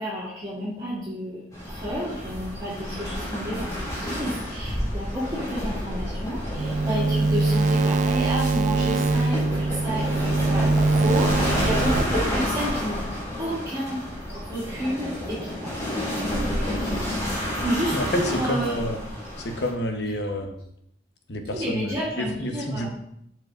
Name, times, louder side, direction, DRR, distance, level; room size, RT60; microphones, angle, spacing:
voice 1, 0.0-13.0 13.4-14.0 14.3-16.3 16.6-17.0 17.6-18.7 21.5-22.9, equal, 25° right, -9 dB, 2.3 m, -31 dB
sound 1, 1.5-19.7, equal, 20° left, 2.6 m, -30 dB
sound 2, 6.6-12.0, right 3 dB, 45° right, 0.3 m, -22 dB
voice 2, 17.9-19.0 19.4-20.6 21.3-22.9, equal, 75° left, 4 dB, 1.1 m, -29 dB
12.5 x 4.7 x 2.6 m, 0.73 s
head